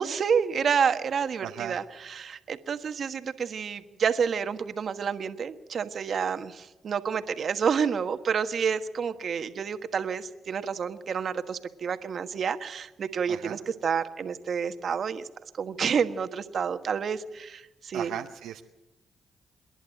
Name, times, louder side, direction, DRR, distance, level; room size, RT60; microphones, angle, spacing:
voice 1, 0.0-15.3 15.6-18.1, right 6 dB, 60° right, 9 dB, 1.4 m, -29 dB
voice 2, 1.4-1.7 13.3-13.6 17.9-18.6, right 11 dB, 85° right, 5 dB, 0.8 m, -36 dB
27.0 x 11.0 x 9.0 m, 1.1 s
supercardioid pair, 60°, 0 cm